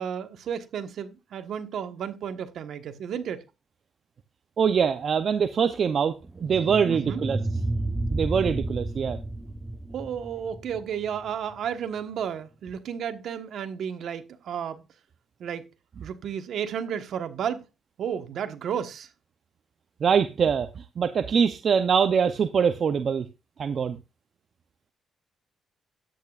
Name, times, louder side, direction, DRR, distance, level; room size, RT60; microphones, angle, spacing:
voice 1, 0.0-3.4 6.9-7.2 9.9-14.8 15.4-15.6 16.0-17.6 18.0-19.1, right 8 dB, 70° right, 1.3 m, -32 dB
voice 2, 4.6-7.4 8.1-9.2 20.0-23.3 23.6-24.0, right 6 dB, 50° right, 0.7 m, -23 dB
sound 1, 6.2-11.3, right 2 dB, 15° right, 0.8 m, -31 dB
13.0 x 8.9 x 2.5 m
cardioid pair, 90°, 0 cm